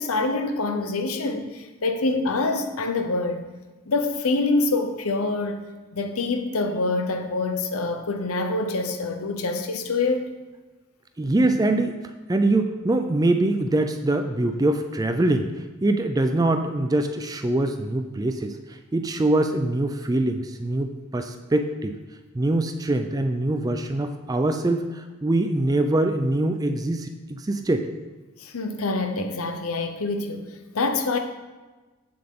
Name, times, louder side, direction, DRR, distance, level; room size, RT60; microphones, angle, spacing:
voice 1, 0.0-3.4 3.9-5.6 5.9-10.3 28.4-31.2, left 3 dB, 85° left, 6 dB, 0.8 m, -26 dB
voice 2, 11.2-12.0 12.3-22.0 22.3-27.9, right 2 dB, 15° right, 7 dB, 0.4 m, -23 dB
7.8 x 7.5 x 3.7 m, 1.2 s
head